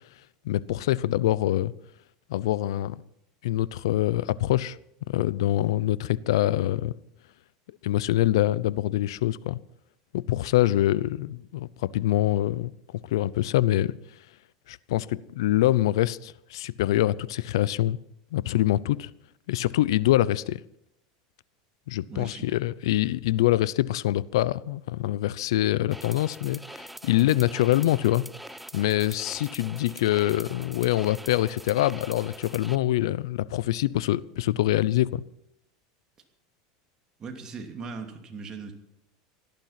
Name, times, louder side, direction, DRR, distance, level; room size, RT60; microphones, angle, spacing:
voice 1, 0.4-1.7 2.3-3.0 3.4-4.8 5.1-6.9 7.8-9.6 10.1-12.7 13.1-14.0 14.7-18.0 18.3-19.1 19.5-20.6 21.9-28.2 28.7-35.2, left 14 dB, 85° left, 0.6 m, -25 dB
voice 2, 22.1-22.5 37.2-38.7, right 4 dB, 25° right, 2.8 m, -39 dB
sound 1, 25.9-32.7, right 1 dB, 5° right, 0.6 m, -44 dB
17.5 x 12.0 x 5.9 m
supercardioid pair, 135°, 2 cm